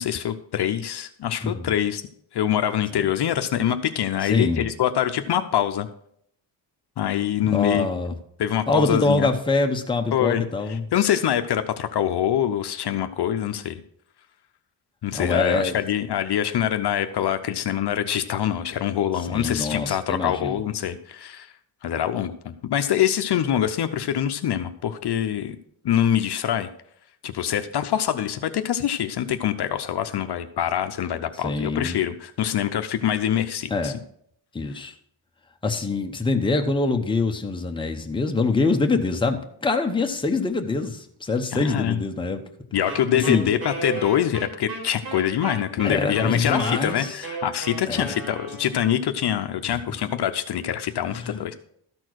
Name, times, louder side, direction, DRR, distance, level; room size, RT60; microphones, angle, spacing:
voice 1, 0.0-2.0 2.3-5.9 7.0-7.9 8.4-9.3 10.1-13.8 15.0-21.5 21.8-25.6 25.8-26.7 27.2-33.9 41.5-42.0 42.7-51.5, left 10 dB, 60° left, 8 dB, 0.7 m, -24 dB
voice 2, 4.2-4.7 7.4-8.2 8.7-10.8 15.1-15.8 19.3-20.6 31.4-32.0 33.7-34.0 34.5-34.9 35.6-42.4 43.1-43.5 45.8-47.2 47.9-48.1 51.1-51.3, left 3 dB, 10° left, 4 dB, 0.8 m, -24 dB
Wind instrument woodwind instrument, 42.9-48.9, right 3 dB, 55° right, 4.7 m, -35 dB
13.0 x 4.4 x 6.2 m, 0.70 s
wide cardioid pair, 135°, 46 cm